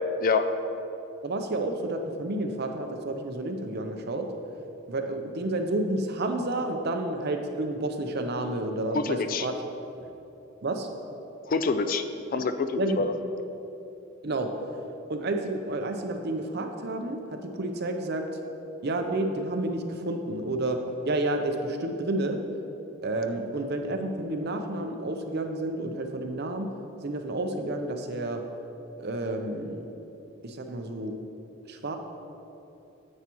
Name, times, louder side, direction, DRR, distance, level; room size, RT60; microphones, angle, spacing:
voice 1, 1.2-4.3 4.9-9.5 10.6-10.9 12.8-13.1 14.2-14.5 15.1-18.2 18.8-20.8 21.0-22.4 23.0-26.7 27.0-28.4 29.0-29.9 30.4-31.1 31.7-32.0, right 2 dB, 55° right, 5 dB, 0.7 m, -30 dB
voice 2, 9.0-9.5 11.5-12.0 12.3-13.1, left 4 dB, 45° left, 9 dB, 0.4 m, -26 dB
9.6 x 8.3 x 3.0 m, 3.0 s
head